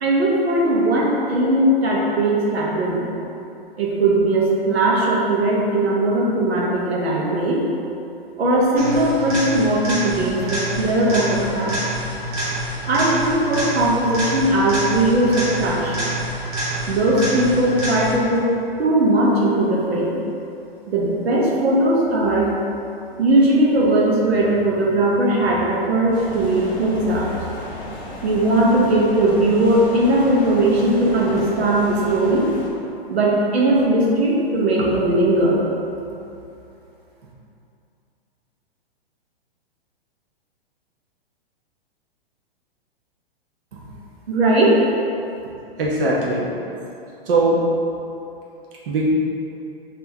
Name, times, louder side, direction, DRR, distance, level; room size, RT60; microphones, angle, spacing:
voice 1, 0.0-3.1 3.8-7.6 8.4-11.8 12.9-16.1 16.9-18.5 18.8-20.1 20.9-22.5 23.2-27.3 28.2-32.5 33.1-35.6 43.7-43.8 44.3-44.8, right 1 dB, 85° right, -4 dB, 1.0 m, -19 dB
sound 1, 8.8-18.4 26.3-26.4, right 1 dB, 40° right, 1.4 m, -27 dB
sound 2, 26.1-32.7, left 1 dB, 30° left, 0.9 m, -35 dB
voice 2, 45.8-46.5 47.2-47.6 48.9-49.1, right 2 dB, 60° right, -4 dB, 0.9 m, -19 dB
5.5 x 2.8 x 2.8 m, 2.7 s
hypercardioid pair, 120°, 31 cm